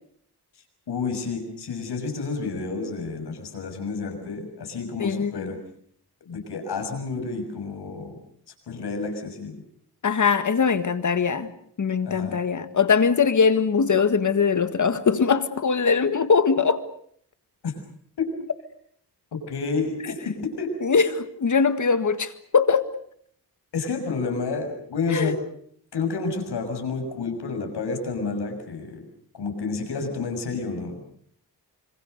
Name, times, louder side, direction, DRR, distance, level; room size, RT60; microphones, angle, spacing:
voice 1, 0.9-5.6 6.3-8.2 8.7-9.6 12.0-12.4 17.6-17.7 18.2-18.3 19.3-20.7 23.7-25.4 25.9-29.0 29.3-31.0, left 4 dB, 80° left, 6.6 m, -30 dB
voice 2, 5.0-5.5 10.0-11.5 11.8-16.8 20.8-22.8 25.1-25.4, left 5 dB, 50° left, 1.7 m, -21 dB
26.5 x 26.0 x 6.7 m
wide cardioid pair, 110°, 39 cm